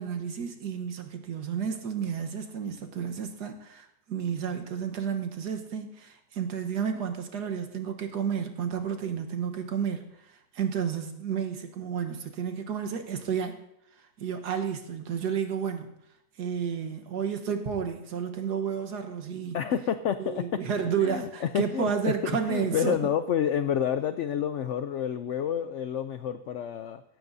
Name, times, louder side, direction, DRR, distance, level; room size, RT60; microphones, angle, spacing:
voice 1, 0.0-13.5 14.2-15.9 16.4-19.6 20.2-23.1, right 7 dB, 75° right, 6 dB, 1.7 m, -31 dB
voice 2, 19.5-20.6 21.0-22.1 22.5-27.0, left 9 dB, 75° left, 11 dB, 0.6 m, -29 dB
17.0 x 13.5 x 2.7 m, 0.80 s
omnidirectional pair, 1.8 m